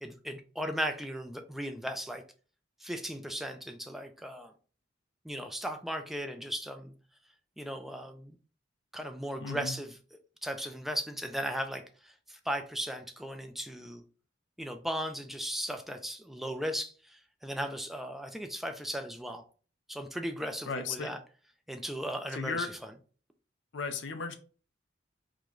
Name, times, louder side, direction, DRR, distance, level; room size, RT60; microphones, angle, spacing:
voice 1, 0.0-2.2 2.8-4.5 5.2-6.9 7.6-8.4 8.9-10.0 10.4-14.0 14.6-19.4 19.9-21.2 21.7-22.7, equal, ahead, 5 dB, 0.4 m, -37 dB
voice 2, 9.4-9.8 20.7-21.1 22.3-22.7 23.7-24.3, left 4 dB, 85° left, 7 dB, 0.6 m, -35 dB
4.8 x 2.2 x 3.8 m, 0.40 s
head